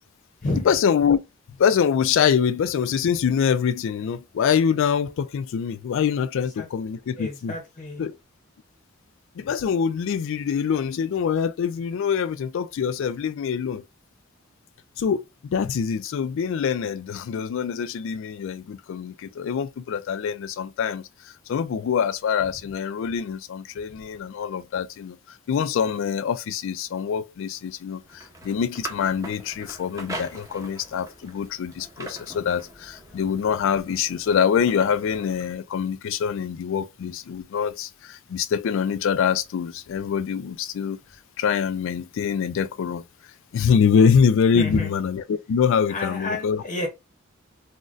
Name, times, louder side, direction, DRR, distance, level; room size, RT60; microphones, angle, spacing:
voice 1, 0.6-1.2 1.6-7.5 8.0-8.1 9.4-13.8 15.0-21.0 21.5-25.2 25.5-41.0 41.4-43.0 43.5-46.6, left 7 dB, 65° left, 0.3 m, -24 dB
voice 2, 7.1-8.1 44.5-44.9 45.9-46.9, left 2 dB, 40° left, 0.7 m, -30 dB
sound 1, 27.7-35.6, right 2 dB, 15° right, 0.6 m, -42 dB
3.9 x 2.1 x 2.4 m
head